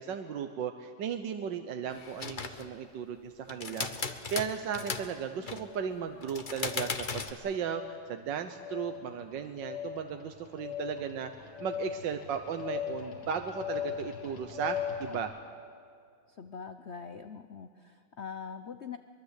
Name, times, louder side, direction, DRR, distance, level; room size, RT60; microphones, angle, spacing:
voice 1, 0.0-15.4, right 7 dB, 65° right, 7 dB, 1.5 m, -36 dB
sound 1, 1.9-2.7 3.5-5.1 5.4-5.8 6.2-7.3, left 4 dB, 35° left, 0.9 m, -37 dB
sound 2, 3.7-3.9 4.6-5.0 5.6-6.0 6.6-7.0 7.6-8.0 8.6-15.2, left 9 dB, 65° left, 3.0 m, -39 dB
voice 2, 16.4-19.0, left 6 dB, 90° left, 9 dB, 0.5 m, -43 dB
23.5 x 22.5 x 8.3 m, 2.3 s
omnidirectional pair, 2.3 m